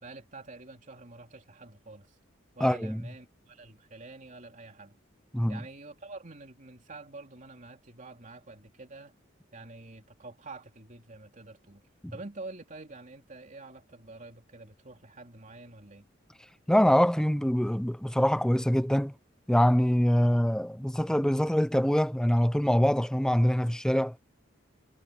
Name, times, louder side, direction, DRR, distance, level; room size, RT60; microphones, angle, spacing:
voice 1, 0.0-2.2 2.5-5.0 5.5-9.1 9.5-11.8 12.1-16.1, right 3 dB, 40° right, 3.3 m, -47 dB
voice 2, 2.6-3.0 5.3-5.6 16.7-19.1 19.5-24.1, equal, 5° left, 0.6 m, -24 dB
head